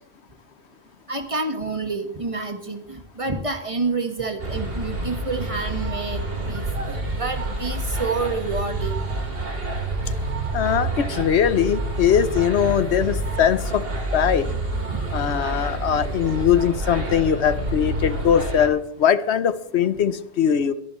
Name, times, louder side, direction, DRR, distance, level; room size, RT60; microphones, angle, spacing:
voice 1, 1.1-9.0 14.9-15.0, right 3 dB, 30° right, 6 dB, 1.5 m, -28 dB
sound 1, 4.4-18.7, right 2 dB, 60° right, 2.7 m, -28 dB
voice 2, 10.5-13.8 14.1-14.5 15.1-20.7, left 8 dB, 80° left, 13 dB, 1.1 m, -21 dB
22.5 x 11.0 x 3.2 m, 0.66 s
omnidirectional pair, 1.1 m